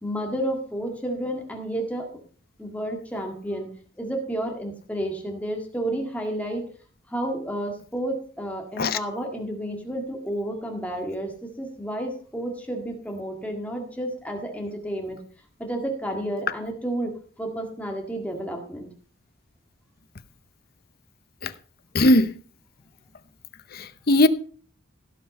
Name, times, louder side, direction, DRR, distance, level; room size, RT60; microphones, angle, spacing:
voice 1, 0.0-2.1 2.6-6.6 7.1-15.2 15.6-17.1 17.4-18.9, right 1 dB, 5° left, 1.8 m, -31 dB
voice 2, 21.9-22.3 23.7-24.3, left 1 dB, 45° left, 0.7 m, -19 dB
16.0 x 5.7 x 5.3 m
head